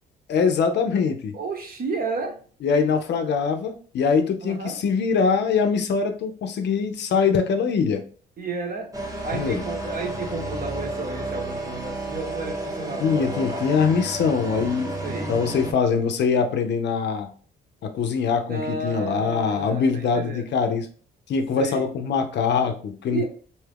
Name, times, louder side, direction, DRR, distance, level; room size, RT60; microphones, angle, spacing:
voice 1, 0.3-1.4 2.6-8.0 9.3-9.6 13.0-14.9 15.3-17.3 17.8-20.9 21.3-23.2, left 5 dB, 60° left, 6 dB, 0.5 m, -23 dB
voice 2, 1.3-2.4 4.4-4.8 8.4-8.9 9.2-13.6 15.0-15.3 18.5-20.5 21.6-21.9 23.1-23.2, right 4 dB, 45° right, 3 dB, 0.9 m, -32 dB
sound 1, 8.9-15.7, right 1 dB, 15° right, 0.8 m, -31 dB
2.7 x 2.3 x 3.4 m, 0.42 s
cardioid pair, 90°, 20 cm